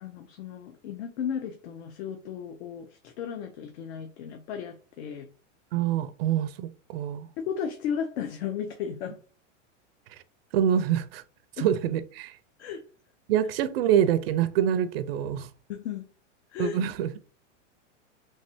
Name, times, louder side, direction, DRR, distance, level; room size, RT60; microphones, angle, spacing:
voice 1, 0.0-5.3 7.4-9.2 11.6-11.7 12.6-12.8 15.7-16.0 16.5-16.8, left 8 dB, 65° left, 0.6 m, -34 dB
voice 2, 5.7-7.3 10.5-11.2 11.6-12.4 13.3-15.5 16.6-17.1, right 9 dB, 55° right, 0.4 m, -25 dB
3.2 x 3.2 x 2.6 m
supercardioid pair, 170°, 36 cm